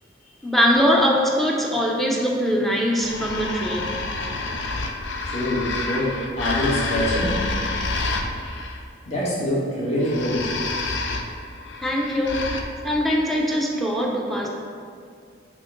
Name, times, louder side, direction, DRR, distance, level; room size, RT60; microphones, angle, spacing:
voice 1, 0.4-4.0 11.8-12.5 12.8-14.5, equal, ahead, -1 dB, 0.6 m, -22 dB
sound 1, 3.0-8.8 10.0-12.6, left 3 dB, 90° left, 0.6 m, -28 dB
voice 2, 5.2-7.4 9.1-10.4, equal, 35° left, -7 dB, 1.4 m, -25 dB
6.0 x 3.7 x 6.0 m, 2.2 s
head